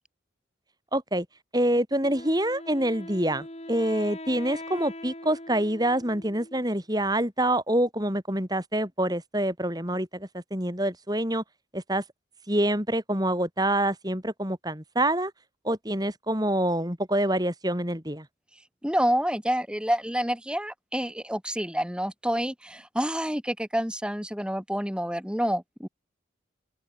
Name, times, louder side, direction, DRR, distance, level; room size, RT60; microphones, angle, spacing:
voice 1, 0.9-1.3 1.5-11.4 11.7-12.0 12.5-15.3 15.6-18.3, right 1 dB, 20° right, 7.2 m, -26 dB
Wind instrument woodwind instrument, 2.0-6.8, left 1 dB, 35° left, 4.8 m, -42 dB
voice 2, 18.8-25.9, equal, 5° right, 7.4 m, -28 dB
open air
head